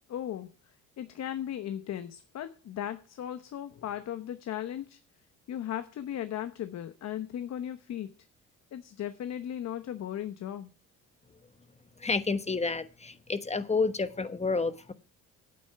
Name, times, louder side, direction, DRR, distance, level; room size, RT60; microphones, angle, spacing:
voice 1, 0.1-5.0 5.5-8.1 8.7-10.7, left 10 dB, 55° left, 0.9 m, -37 dB
voice 2, 12.0-14.9, left 4 dB, 20° left, 1.1 m, -30 dB
9.0 x 8.6 x 5.8 m
supercardioid pair, 75°, 31 cm